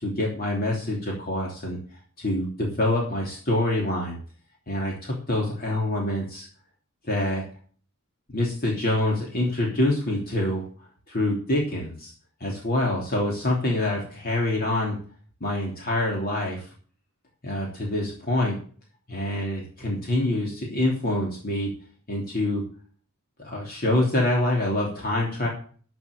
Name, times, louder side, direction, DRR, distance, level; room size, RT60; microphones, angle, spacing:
voice 1, 0.0-1.8 2.2-4.2 4.7-6.5 7.1-7.4 8.3-10.6 11.1-12.1 12.4-15.0 15.4-16.7 17.4-18.6 19.1-21.7 22.1-22.6 23.4-25.5, left 1 dB, 45° left, -2 dB, 3.2 m, -26 dB
13.0 x 6.3 x 6.7 m, 0.42 s
head